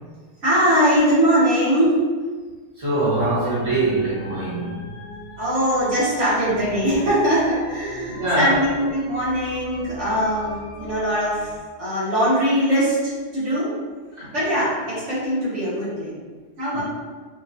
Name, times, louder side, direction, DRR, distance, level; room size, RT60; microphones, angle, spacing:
voice 1, 0.4-2.0 5.4-11.5 11.8-13.7 14.3-16.2 16.6-16.8, equal, 75° right, -10 dB, 1.6 m, -21 dB
voice 2, 2.8-4.9 8.1-8.6 14.2-14.3 16.7-16.8, right 2 dB, 35° right, -10 dB, 1.3 m, -23 dB
sound 1, 3.0-11.6, left 2 dB, 70° left, 0.8 m, -41 dB
4.4 x 2.3 x 2.7 m, 1.4 s
omnidirectional pair, 1.2 m